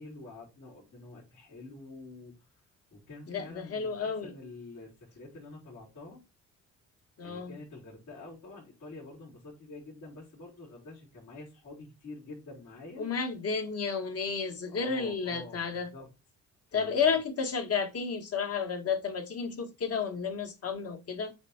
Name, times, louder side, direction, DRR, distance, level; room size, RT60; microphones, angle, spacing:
voice 1, 0.0-2.5 2.9-6.2 7.2-13.0 14.7-16.1 16.7-17.2, left 2 dB, 75° left, 3.9 m, -47 dB
voice 2, 3.3-4.3 7.2-7.5 13.0-15.9 16.7-21.3, left 5 dB, 50° left, 1.6 m, -32 dB
8.0 x 3.5 x 4.4 m
cardioid pair, 90°, 30 cm